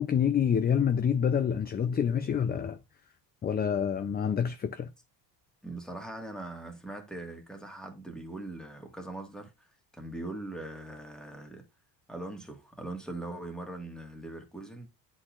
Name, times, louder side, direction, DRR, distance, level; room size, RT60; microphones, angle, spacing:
voice 1, 0.0-2.8 3.4-4.9, left 8 dB, 25° left, 0.4 m, -27 dB
voice 2, 5.6-9.5 9.9-11.6 12.1-14.9, right 2 dB, ahead, 1.6 m, -41 dB
9.8 x 4.2 x 2.4 m
cardioid pair, 115°, 41 cm